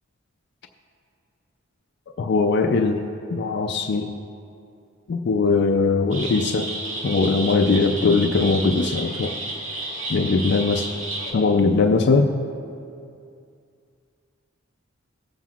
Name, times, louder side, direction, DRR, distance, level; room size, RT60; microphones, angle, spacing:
voice 1, 2.2-3.0 3.3-4.1 5.1-6.7 7.0-9.3 10.1-10.9 11.3-12.3, left 4 dB, 55° left, 4 dB, 0.4 m, -20 dB
sound 1, 6.1-11.3, right 2 dB, 85° right, 1.8 m, -32 dB
16.5 x 7.4 x 2.4 m, 2.5 s
head